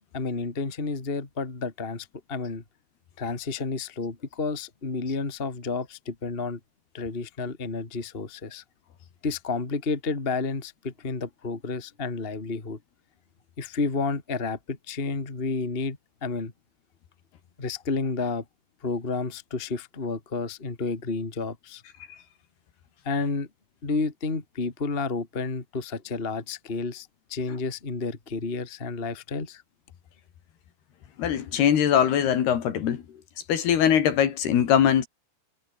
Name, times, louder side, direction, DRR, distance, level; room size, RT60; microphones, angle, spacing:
voice 1, 0.1-2.6 3.2-6.6 6.9-8.6 9.2-12.8 13.6-16.5 17.6-18.4 18.8-21.8 23.0-23.5 23.8-29.6, left 4 dB, 20° left, 1.9 m, -31 dB
voice 2, 31.2-33.0 33.5-35.1, left 9 dB, 65° left, 4.1 m, -21 dB
omnidirectional pair, 5.2 m